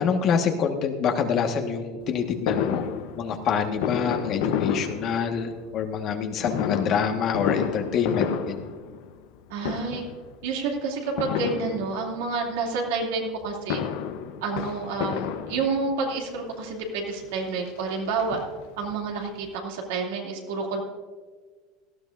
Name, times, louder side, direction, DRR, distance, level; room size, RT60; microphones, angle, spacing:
voice 1, 0.0-2.8 3.2-8.6, left 6 dB, 50° left, 5 dB, 1.5 m, -26 dB
Fireworks, 2.5-5.7 6.4-9.4 9.6-10.2 11.2-12.3 13.4-16.1 16.8-16.9 17.2-17.3 17.7-18.9 19.2-19.3 19.5-19.6, left 8 dB, 70° left, 0.9 m, -30 dB
voice 2, 9.5-10.0 10.4-13.8 14.4-18.4 18.8-20.8, right 4 dB, 75° right, -1 dB, 2.7 m, -29 dB
18.0 x 13.0 x 2.6 m, 1.5 s
hypercardioid pair, 100°, 0 cm